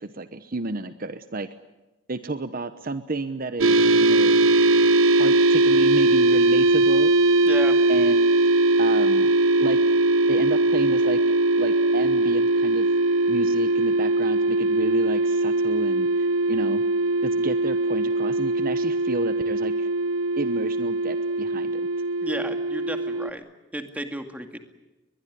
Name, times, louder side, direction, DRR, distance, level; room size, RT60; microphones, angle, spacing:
voice 1, 0.0-1.5 2.1-4.4 5.2-7.1 7.9-8.3 8.8-9.3 9.6-9.8 10.3-11.2 11.6-12.9 13.3-16.8 17.2-19.9 20.4-21.8, right 3 dB, 45° right, 11 dB, 1.0 m, -31 dB
sound 1, 3.6-23.3, right 2 dB, 85° right, 1.1 m, -20 dB
voice 2, 7.4-7.8 22.2-23.4 23.7-24.6, right 1 dB, 5° right, 6 dB, 2.2 m, -33 dB
22.0 x 22.0 x 9.9 m, 1.0 s
head